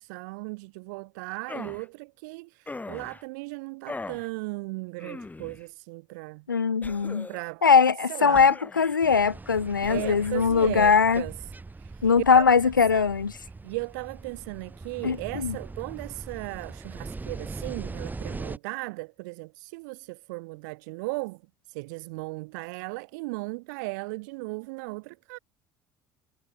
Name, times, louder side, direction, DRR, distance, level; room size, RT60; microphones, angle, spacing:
voice 1, 0.0-2.5 2.9-6.4 7.3-7.6 8.1-8.5 9.9-11.3 11.8-11.9 12.3-12.6 12.9-13.1 13.6-21.4 21.7-25.4, right 27 dB, 65° right, 1.7 m, -36 dB
sound 1, 1.5-1.9 2.7-3.2 3.9-4.3 5.0-5.6 6.8-7.5 8.3-9.0 9.8-10.3, left 3 dB, 15° left, 4.9 m, -40 dB
voice 2, 6.5-7.3 7.6-11.2 12.0-13.4 15.0-15.6, left 5 dB, 90° left, 0.6 m, -21 dB
sound 2, 9.0-18.6, right 3 dB, 15° right, 2.4 m, -41 dB
figure-of-eight pair, 60°, 10 cm